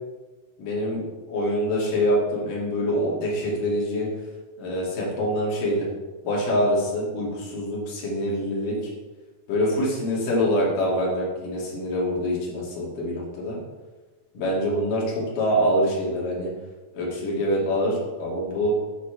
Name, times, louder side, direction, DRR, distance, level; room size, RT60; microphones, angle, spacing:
voice 1, 0.6-4.1 4.6-5.9 6.2-8.8 9.5-13.6 14.4-16.5 16.9-18.7, equal, 75° left, -4 dB, 3.8 m, -25 dB
9.1 x 7.0 x 4.5 m, 1.3 s
omnidirectional pair, 3.8 m